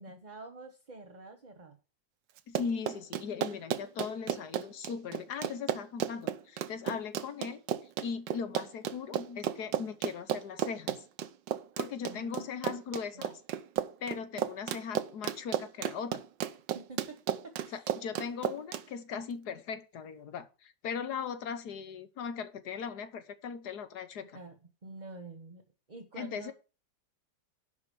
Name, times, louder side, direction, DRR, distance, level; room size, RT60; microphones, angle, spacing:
voice 1, 0.0-1.8 12.1-12.5 13.1-13.3 16.7-17.9 24.2-24.6 24.8-25.6 25.9-26.5, right 3 dB, 25° right, 6 dB, 1.3 m, -48 dB
Run, 2.4-18.8, right 11 dB, 75° right, 1.4 m, -34 dB
voice 2, 2.5-7.6 8.0-11.0 11.8-13.3 14.0-16.2 17.7-24.4 26.2-26.5, left 6 dB, 60° left, 11 dB, 1.6 m, -39 dB
11.0 x 4.6 x 6.9 m, 0.33 s
omnidirectional pair, 2.0 m